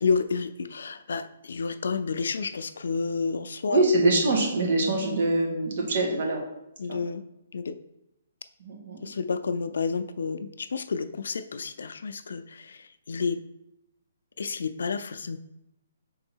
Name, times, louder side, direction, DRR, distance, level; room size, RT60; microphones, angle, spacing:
voice 1, 0.0-3.9 6.8-7.2 7.5-7.8 9.0-13.4 14.4-15.4, left 5 dB, 75° left, 11 dB, 0.4 m, -30 dB
voice 2, 3.7-6.4 6.9-7.0 8.6-9.0, right 2 dB, 50° right, 0 dB, 1.7 m, -24 dB
5.4 x 3.9 x 4.5 m, 0.86 s
hypercardioid pair, 170°, 0 cm